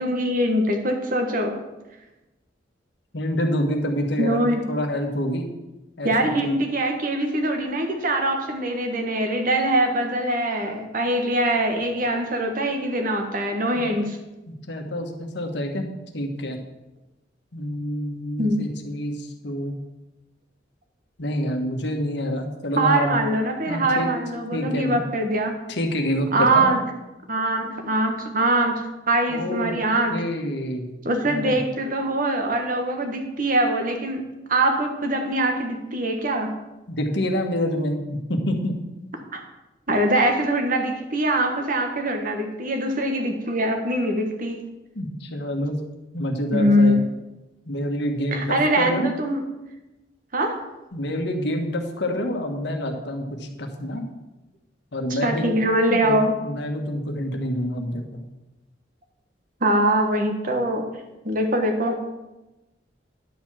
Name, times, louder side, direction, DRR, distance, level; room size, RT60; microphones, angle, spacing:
voice 1, 0.0-1.6 4.2-4.7 6.0-14.2 18.4-18.6 22.8-25.6 26.3-26.8 27.3-30.2 31.0-34.2 34.5-36.6 39.3-39.4 39.9-44.7 46.5-47.2 48.3-49.4 50.3-50.6 55.1-56.4 59.6-60.9 61.2-62.1, right 1 dB, 50° right, 4 dB, 1.4 m, -23 dB
voice 2, 3.1-5.5 6.0-6.5 13.8-14.0 14.5-15.9 16.1-16.6 17.5-19.8 21.2-23.1 23.7-24.1 24.5-25.0 25.7-26.7 29.3-29.7 30.1-31.0 31.2-31.6 36.9-38.7 44.9-45.8 46.1-47.0 47.7-49.1 50.9-54.0 54.9-55.5 55.9-58.2, equal, 65° left, 3 dB, 1.3 m, -27 dB
10.5 x 4.7 x 7.4 m, 1.0 s
head